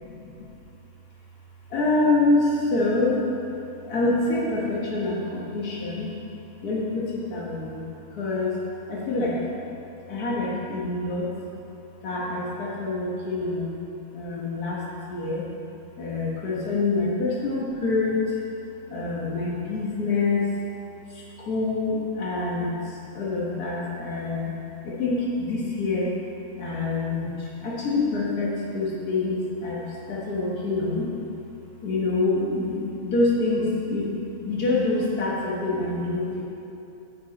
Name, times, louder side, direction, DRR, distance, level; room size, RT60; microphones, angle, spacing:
voice 1, 0.0-0.5 1.7-3.3 3.8-6.1 6.6-7.8 8.1-8.6 8.9-9.4 10.1-11.3 12.0-13.8 14.1-14.8 15.1-15.5 16.0-18.4 18.9-20.5 21.1-24.5 24.8-26.1 26.6-31.1 31.8-36.4, left 3 dB, 85° left, -5 dB, 1.8 m, -26 dB
13.5 x 5.0 x 4.2 m, 2.8 s
omnidirectional pair, 1.6 m